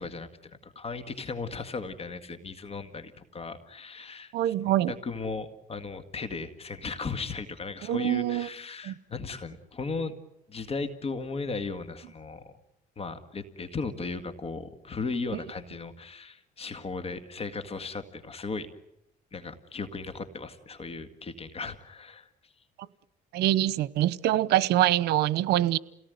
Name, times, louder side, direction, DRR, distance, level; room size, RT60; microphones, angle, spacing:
voice 1, 0.0-4.3 4.7-10.1 10.5-12.5 13.0-18.7 19.3-22.5, left 4 dB, 35° left, 1.9 m, -36 dB
voice 2, 4.3-4.9 7.9-8.5 8.8-8.9 23.3-25.8, right 14 dB, 75° right, 0.9 m, -24 dB
29.0 x 18.5 x 9.5 m
cardioid pair, 110°, 17 cm